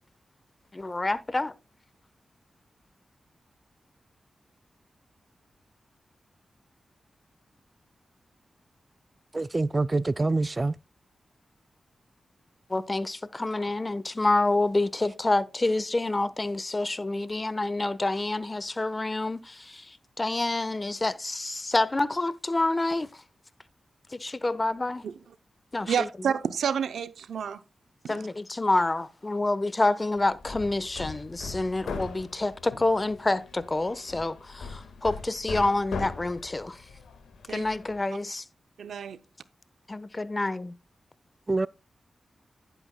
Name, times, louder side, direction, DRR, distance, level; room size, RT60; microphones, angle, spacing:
voice 1, 0.7-1.5 12.7-23.2 24.1-25.0 25.7-26.1 28.1-36.8 37.5-38.4 39.9-40.7, left 2 dB, 35° left, 1.0 m, -28 dB
voice 2, 9.3-10.7 41.5-41.7, right 3 dB, 35° right, 0.4 m, -25 dB
voice 3, 25.9-27.6 28.0-28.2 37.5-37.6 38.8-39.2, right 7 dB, 85° right, 0.6 m, -29 dB
Hammer, 30.2-38.0, left 4 dB, 90° left, 1.7 m, -40 dB
11.0 x 9.1 x 2.2 m
cardioid pair, 40°, 0 cm